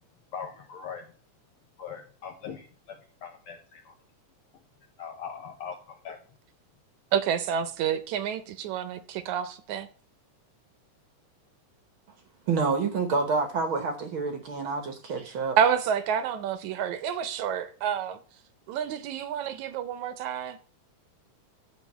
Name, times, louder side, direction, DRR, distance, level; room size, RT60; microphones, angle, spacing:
voice 1, 0.3-1.1 1.8-3.9 5.0-6.2, left 7 dB, 70° left, 1.4 m, -41 dB
voice 2, 7.1-9.9 15.3-18.2 18.7-20.6, right 8 dB, 80° right, 2.2 m, -29 dB
voice 3, 12.5-15.6, right 4 dB, 60° right, 1.5 m, -28 dB
10.5 x 3.7 x 7.3 m
omnidirectional pair, 3.4 m